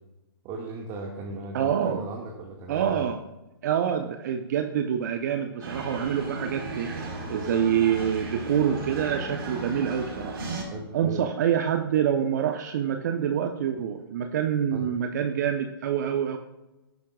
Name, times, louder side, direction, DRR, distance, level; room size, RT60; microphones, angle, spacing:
voice 1, 0.4-3.0 10.7-11.2 14.7-14.9, right 3 dB, 25° right, -1 dB, 1.9 m, -37 dB
voice 2, 1.5-2.0 2.7-3.2 3.6-10.4 10.9-16.4, right 9 dB, 45° right, 6 dB, 0.9 m, -26 dB
sound 1, 5.6-10.6, right 2 dB, 70° right, 4.6 m, -35 dB
18.5 x 10.0 x 2.4 m, 1.0 s
hypercardioid pair, 135°, 13 cm